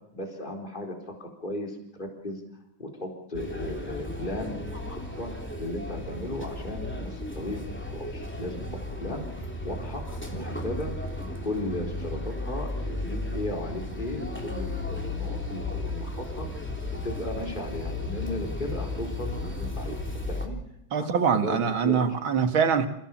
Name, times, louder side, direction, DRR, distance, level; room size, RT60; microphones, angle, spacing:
voice 1, 0.1-2.4 2.8-5.3 5.6-7.7 7.9-8.6 9.0-9.2 9.6-10.9 11.2-16.5 17.0-20.0 20.3-20.6 20.9-22.2, left 1 dB, 25° left, 2 dB, 4.3 m, -36 dB
sound 1, 3.3-20.5, left 2 dB, 5° left, 3.2 m, -34 dB
voice 2, 20.9-22.9, right 7 dB, 90° right, 8 dB, 2.6 m, -24 dB
28.0 x 16.5 x 7.3 m, 0.81 s
omnidirectional pair, 2.2 m